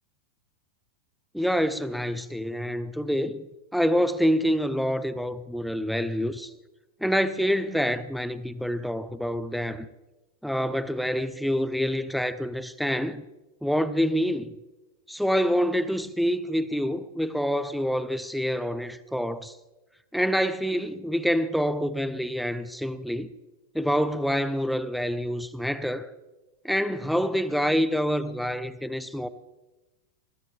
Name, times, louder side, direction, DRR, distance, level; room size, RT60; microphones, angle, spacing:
voice 1, 1.3-3.5 3.7-6.5 7.0-9.9 10.4-13.2 13.6-14.5 15.1-19.5 20.1-23.3 23.7-26.1 26.6-29.3, equal, ahead, 0.8 m, -26 dB
20.5 x 15.5 x 3.7 m
figure-of-eight pair, 90°, 0 cm